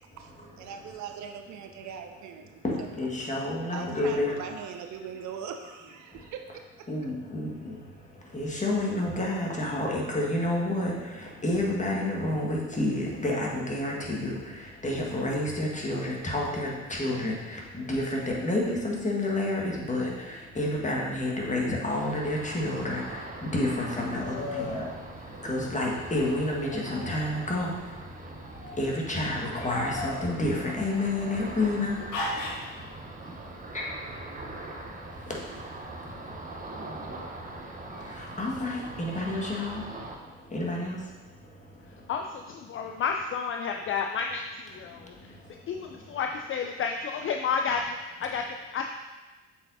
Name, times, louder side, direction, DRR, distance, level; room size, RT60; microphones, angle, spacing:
voice 1, 0.6-2.6 3.7-6.6, right 7 dB, 50° right, 6 dB, 0.6 m, -40 dB
voice 2, 2.6-4.3 6.9-7.8 8.3-10.9 11.4-14.4 14.8-23.0 23.4-24.8 25.4-27.7 28.8-32.0 33.7-33.9 38.4-39.8 40.5-41.0, left 1 dB, 20° left, -2 dB, 1.7 m, -29 dB
Ocean, 21.9-40.1, right 2 dB, 20° right, 0.9 m, -42 dB
sound 1, 24.4-24.9 26.4-27.6 28.4-28.8 29.4-31.5 32.1-32.7, left 2 dB, 55° left, 1.4 m, -36 dB
voice 3, 42.1-45.4 45.7-48.9, left 6 dB, 35° left, 4 dB, 0.4 m, -31 dB
7.6 x 4.7 x 2.7 m, 1.2 s
hypercardioid pair, 55°, 37 cm